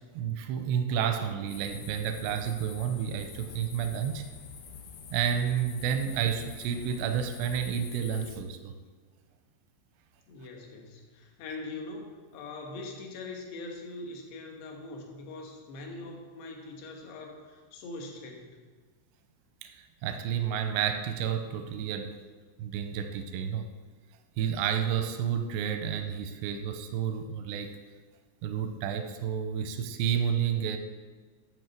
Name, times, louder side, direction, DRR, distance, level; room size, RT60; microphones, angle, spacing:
voice 1, 0.1-4.3 5.1-8.7 19.6-22.1 22.6-23.7 24.4-27.7 28.4-30.8, right 8 dB, 85° right, 7 dB, 2.6 m, -30 dB
sound 1, 1.5-8.4, left 6 dB, 85° left, 3.6 m, -46 dB
voice 2, 10.3-18.6, left 2 dB, 70° left, 1 dB, 3.0 m, -42 dB
11.0 x 4.8 x 7.2 m, 1.4 s
omnidirectional pair, 5.4 m